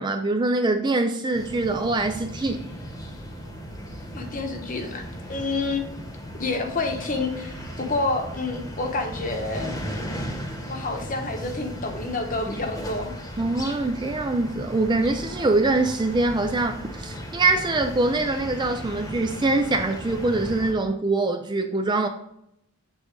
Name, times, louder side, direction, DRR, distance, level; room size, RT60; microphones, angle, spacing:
voice 1, 0.0-2.6 13.4-22.1, right 2 dB, 20° right, 6 dB, 0.4 m, -24 dB
sound 1, 1.3-20.7, equal, 15° left, 1.1 m, -36 dB
voice 2, 4.1-5.0 5.3-5.8 6.4-9.8 10.7-13.1, left 3 dB, 35° left, 4 dB, 1.0 m, -28 dB
7.1 x 4.0 x 4.6 m, 0.80 s
head